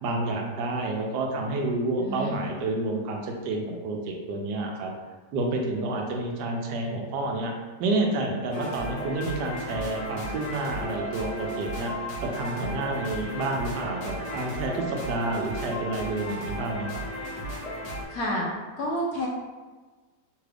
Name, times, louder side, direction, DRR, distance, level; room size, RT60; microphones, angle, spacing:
voice 1, 0.0-4.9 5.3-7.5 7.8-11.9 12.2-17.1, right 2 dB, 80° right, 1 dB, 1.2 m, -29 dB
voice 2, 2.0-2.4 18.1-18.5 18.8-19.3, equal, 70° left, -2 dB, 0.9 m, -29 dB
sound 1, 8.5-18.1, equal, 45° left, 1.1 m, -35 dB
3.3 x 2.3 x 3.3 m, 1.3 s
omnidirectional pair, 1.8 m